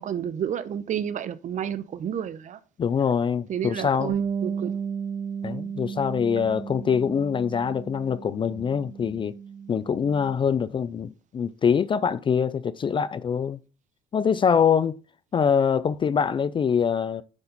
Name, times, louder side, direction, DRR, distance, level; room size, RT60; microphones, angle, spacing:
voice 1, 0.0-2.6 3.5-4.7, right 9 dB, 50° right, 0.7 m, -31 dB
voice 2, 2.8-4.2 5.4-9.4 9.7-13.6 14.1-15.0 15.3-17.2, left 7 dB, 30° left, 0.4 m, -24 dB
Bass guitar, 4.1-10.3, right 7 dB, 80° right, 1.1 m, -34 dB
9.7 x 4.2 x 4.0 m
cardioid pair, 110°, 17 cm